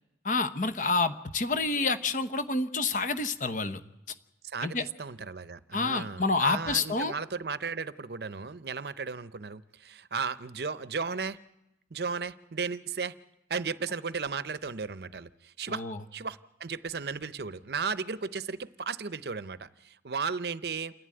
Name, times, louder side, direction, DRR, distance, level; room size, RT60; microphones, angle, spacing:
voice 1, 0.2-3.8 4.6-4.8 5.7-7.1 15.7-16.0, left 3 dB, 45° left, 11 dB, 1.0 m, -28 dB
voice 2, 4.4-11.4 11.9-13.1 13.5-15.8 16.1-20.9, right 5 dB, 65° right, 15 dB, 0.7 m, -35 dB
28.0 x 11.0 x 9.7 m, 0.90 s
head